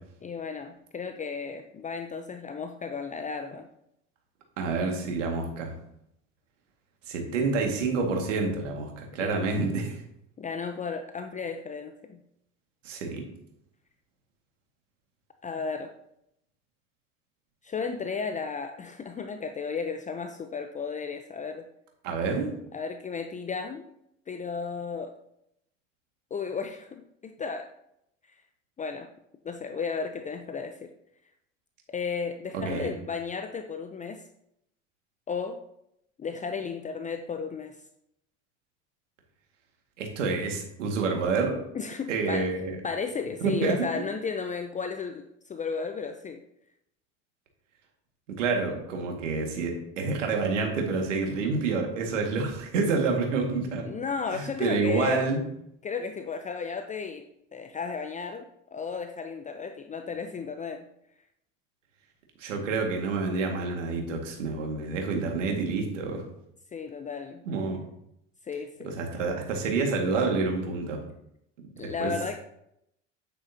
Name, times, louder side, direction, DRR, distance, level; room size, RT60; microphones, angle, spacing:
voice 1, 0.2-3.7 9.2-9.5 10.4-12.2 15.4-15.9 17.6-21.7 22.7-23.8 24.3-25.1 26.3-27.7 28.3-28.4 28.8-29.1 29.4-30.9 31.9-34.2 35.3-35.6 36.2-37.8 41.7-42.5 42.8-46.4 53.0-53.1 53.8-55.2 55.8-57.3 57.5-60.8 66.7-67.4 68.4-68.9 71.8-72.4, left 5 dB, 20° left, 7 dB, 0.7 m, -34 dB
voice 2, 4.6-5.7 7.1-10.0 12.8-13.2 22.0-22.5 32.5-32.9 40.0-41.6 42.1-42.7 43.4-43.9 48.3-53.8 54.3-55.4 62.4-66.2 67.5-67.8 68.8-71.0 71.8-72.1, right 4 dB, 70° right, 2 dB, 2.1 m, -28 dB
9.7 x 8.3 x 2.8 m, 0.77 s
figure-of-eight pair, 75°, 38 cm